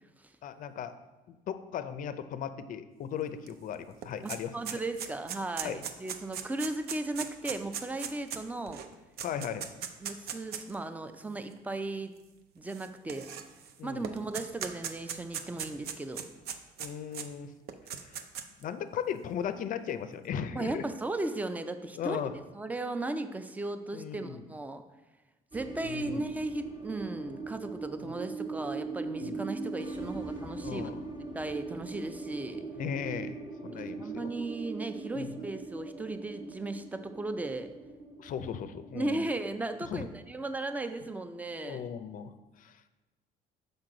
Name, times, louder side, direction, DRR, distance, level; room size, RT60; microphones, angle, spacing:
voice 1, 0.4-0.9 1.3-4.8 5.6-5.8 9.2-9.7 13.8-14.2 16.8-17.5 18.0-18.2 18.6-20.8 21.9-22.3 23.9-24.4 25.8-26.2 28.0-28.1 29.2-29.4 30.6-31.0 32.8-33.4 33.6-34.3 35.1-35.4 38.2-39.2 39.9-40.1 41.6-42.8, left 8 dB, 50° left, 11 dB, 0.5 m, -37 dB
sound 1, 3.5-3.6 3.8-10.7 11.5-11.6 12.7-13.7 14.0-17.3 17.7-18.6, right 8 dB, 70° right, 0.5 m, -39 dB
voice 2, 4.2-8.8 10.0-12.1 12.5-13.3 13.8-16.2 20.5-22.2 22.5-24.8 25.5-30.9 31.3-32.7 33.7-37.7 38.9-41.8, right 2 dB, 10° right, 9 dB, 0.4 m, -36 dB
sound 2, 25.5-40.2, right 4 dB, 25° right, 1.3 m, -41 dB
6.0 x 5.4 x 3.8 m, 1.1 s
cardioid pair, 110°, 17 cm